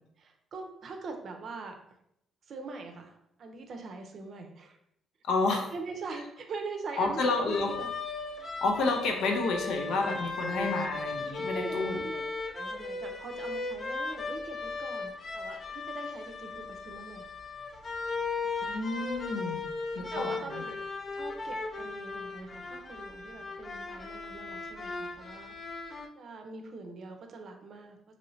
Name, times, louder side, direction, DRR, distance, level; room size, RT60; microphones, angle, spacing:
voice 1, 0.2-1.8 2.5-4.8 5.5-7.9 10.4-10.7 11.5-12.2 12.5-17.3 20.1-20.8 21.1-25.6 26.2-28.0, right 3 dB, 55° right, 4 dB, 0.5 m, -42 dB
voice 2, 5.3-5.6 7.0-7.7 8.6-12.0 18.6-19.6 19.9-20.6, left 3 dB, 80° left, 3 dB, 0.6 m, -30 dB
sound 1, 7.5-26.1, left 3 dB, 40° left, 0.4 m, -37 dB
3.0 x 2.6 x 3.1 m, 0.77 s
cardioid pair, 120°, 0 cm